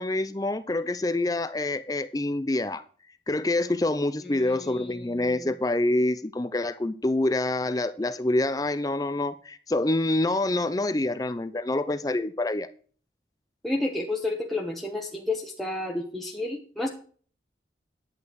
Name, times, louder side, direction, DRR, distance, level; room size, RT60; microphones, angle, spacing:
voice 1, 0.0-2.8 3.3-12.7, left 2 dB, 20° left, 0.5 m, -26 dB
voice 2, 4.2-5.5 13.6-16.9, left 2 dB, ahead, 1.1 m, -31 dB
11.0 x 8.5 x 4.7 m
head